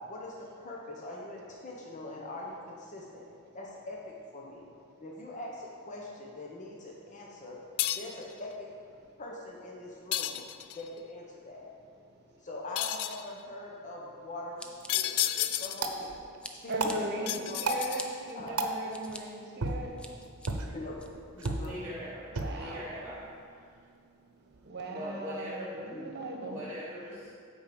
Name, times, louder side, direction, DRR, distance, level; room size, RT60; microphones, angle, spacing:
voice 1, 0.0-3.3 3.5-4.0 4.3-4.7 5.0-7.6 7.9-8.7 9.2-10.4 10.7-11.6 12.4-16.2 16.6-17.8 18.3-18.6 20.7-21.0 21.3-21.7 25.9-26.1, left 1 dB, 35° left, -3 dB, 1.0 m, -42 dB
sound 1, 7.8-8.2 10.1-10.9 12.8-13.3 14.9-15.9 17.3-18.3, left 13 dB, 85° left, 0.4 m, -32 dB
voice 2, 12.0-12.4 16.7-20.1 22.3-22.8 24.6-26.6, right 1 dB, 50° right, 1 dB, 1.2 m, -38 dB
Scissors, 14.6-16.1 16.4-17.0 17.5-18.1 18.6-19.2 19.7-20.5 21.0-21.5, left 1 dB, 5° left, 0.5 m, -45 dB
sound 2, 14.6-24.7, right 2 dB, 80° right, 0.8 m, -38 dB
voice 3, 21.6-22.2 22.5-23.3 24.9-25.9 26.4-27.3, equal, 10° right, -10 dB, 1.2 m, -41 dB
8.8 x 4.7 x 6.9 m, 2.2 s
head